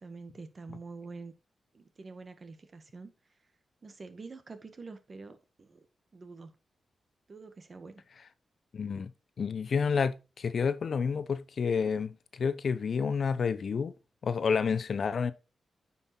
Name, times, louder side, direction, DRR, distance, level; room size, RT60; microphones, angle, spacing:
voice 1, 0.0-1.3 1.7-3.1 3.8-5.9 6.1-6.5 7.3-8.0, right 4 dB, 45° right, 1.7 m, -46 dB
voice 2, 8.7-9.1 9.4-13.9 14.2-15.3, left 6 dB, 65° left, 0.8 m, -29 dB
9.8 x 5.6 x 4.4 m
cardioid pair, 70°, 0 cm